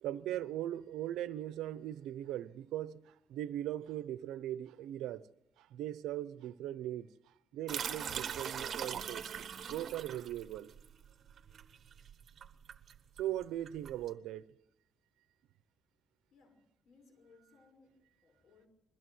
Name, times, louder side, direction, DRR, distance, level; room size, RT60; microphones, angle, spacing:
voice 1, 0.0-5.2 5.6-7.1 7.5-9.3 9.7-10.7 13.2-14.5, right 12 dB, 90° right, 0.8 m, -39 dB
sound 1, 7.7-14.1, right 8 dB, 55° right, 1.2 m, -42 dB
voice 2, 16.3-18.7, left 4 dB, 65° left, 5.3 m, -65 dB
22.0 x 15.5 x 7.9 m
cardioid pair, 90°, 0 cm